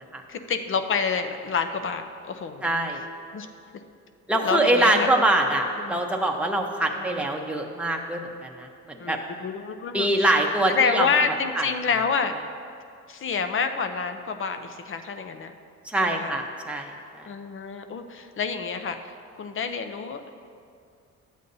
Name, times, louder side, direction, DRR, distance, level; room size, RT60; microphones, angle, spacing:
voice 1, 0.3-2.8 3.3-3.5 4.4-5.1 5.8-6.0 9.0-10.1 10.7-12.4 13.1-15.5 16.0-16.3 17.3-19.0 19.4-20.3, left 5 dB, 45° left, 8 dB, 0.6 m, -28 dB
voice 2, 2.6-3.0 4.3-9.2 9.9-11.1 11.5-11.7 15.8-17.3, right 1 dB, 5° right, 1 dB, 0.8 m, -24 dB
12.0 x 8.3 x 2.7 m, 2.4 s
cardioid pair, 90°, 30 cm